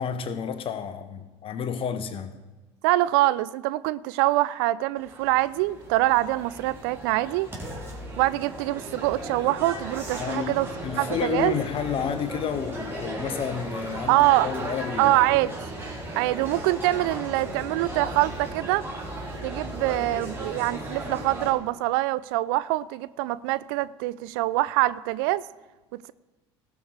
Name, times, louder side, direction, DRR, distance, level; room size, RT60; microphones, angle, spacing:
voice 1, 0.0-2.3 10.2-15.1, left 8 dB, 40° left, 1.1 m, -31 dB
voice 2, 2.8-7.5 8.2-10.7 11.0-11.6 14.1-14.5 15.0-15.5 16.1-18.9 19.4-25.5, right 17 dB, 55° right, 0.4 m, -24 dB
sound 1, 5.0-21.5, right 1 dB, 15° right, 3.6 m, -36 dB
18.0 x 6.2 x 4.8 m
figure-of-eight pair, 65°, 15 cm